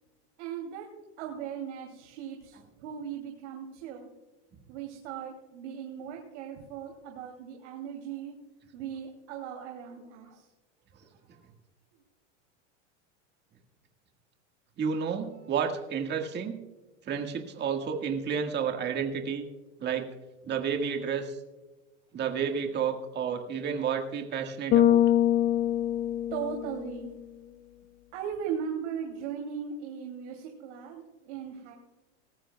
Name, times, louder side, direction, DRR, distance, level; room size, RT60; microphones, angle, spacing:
voice 1, 0.4-0.9 1.2-4.1 4.7-8.4 8.7-10.5 11.1-11.4 26.3-27.1 28.1-31.7, right 8 dB, 70° right, 2 dB, 2.8 m, -38 dB
voice 2, 14.8-16.6 17.0-19.5 19.8-20.1 20.5-21.4 22.1-25.0, right 7 dB, 30° right, 4 dB, 1.7 m, -31 dB
Bass guitar, 24.7-27.0, left 11 dB, 25° left, 0.4 m, -24 dB
19.0 x 14.5 x 2.3 m, 1.1 s
supercardioid pair, 130°, 36 cm